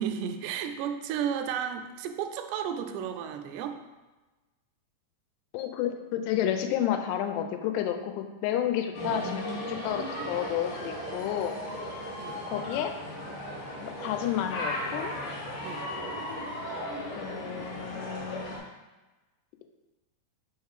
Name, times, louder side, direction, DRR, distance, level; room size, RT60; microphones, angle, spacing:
voice 1, 0.0-3.8 12.2-12.4 15.6-15.9, right 8 dB, 85° right, 7 dB, 2.6 m, -33 dB
voice 2, 5.5-11.6 12.5-12.9 13.8-15.1 17.2-18.5, left 10 dB, 85° left, 7 dB, 2.7 m, -31 dB
sound 1, 8.9-18.6, left 1 dB, 60° left, 2.4 m, -36 dB
5.9 x 3.7 x 4.7 m, 1.2 s
omnidirectional pair, 4.8 m